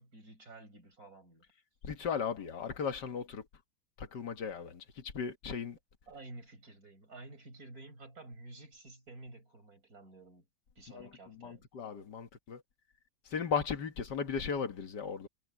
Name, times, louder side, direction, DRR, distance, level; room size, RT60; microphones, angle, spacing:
voice 1, 0.0-1.4 5.6-5.7 6.1-10.5 10.8-11.6, right 2 dB, 45° right, 5.6 m, -51 dB
voice 2, 1.8-3.4 4.0-4.8 5.1-5.8 10.9-12.6 13.3-15.3, left 6 dB, 60° left, 2.1 m, -36 dB
omnidirectional pair, 2.1 m